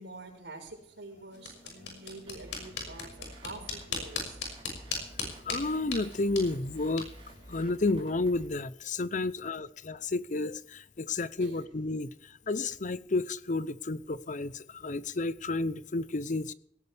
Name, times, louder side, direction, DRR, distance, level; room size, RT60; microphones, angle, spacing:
voice 1, 0.0-4.4 9.3-9.5 11.4-11.6, right 2 dB, 80° right, 2 dB, 5.0 m, -46 dB
sound 1, 1.3-8.3, left 4 dB, 90° left, 6.2 m, -40 dB
sound 2, 2.3-8.5, right 1 dB, 30° right, 3.3 m, -51 dB
voice 2, 5.5-7.1 7.5-16.5, left 2 dB, 45° left, 16 dB, 0.7 m, -31 dB
18.0 x 16.0 x 3.5 m, 0.69 s
head